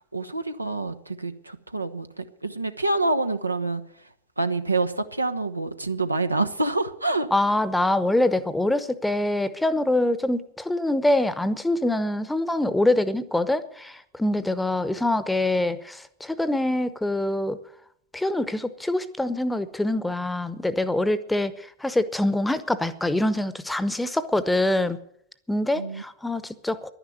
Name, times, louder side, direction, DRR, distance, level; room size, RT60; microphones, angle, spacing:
voice 1, 0.1-3.8 4.4-7.3 25.7-26.0, right 2 dB, 85° right, 9 dB, 0.8 m, -27 dB
voice 2, 7.3-17.6 18.1-21.5 21.8-25.0 25.5-26.9, left 1 dB, 5° left, 14 dB, 0.9 m, -24 dB
11.0 x 10.0 x 9.4 m, 0.70 s
figure-of-eight pair, 90°, 0 cm